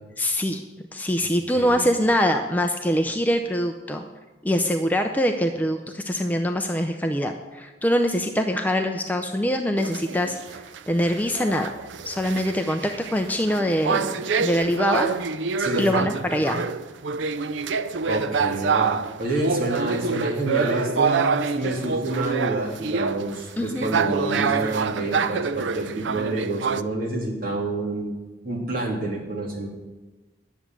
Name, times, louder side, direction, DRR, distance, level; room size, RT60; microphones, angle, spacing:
voice 1, 0.2-0.6 0.9-4.0 4.4-11.7 12.0-15.1 15.8-16.6 23.6-23.9, equal, 10° left, 4 dB, 0.6 m, -24 dB
sound 1, 9.8-26.8, right 5 dB, 80° right, 0.5 m, -26 dB
voice 2, 15.6-16.1 18.1-18.9 19.2-28.1 28.4-29.7, right 2 dB, 50° right, -2 dB, 2.8 m, -28 dB
10.5 x 7.2 x 8.9 m, 1.2 s
head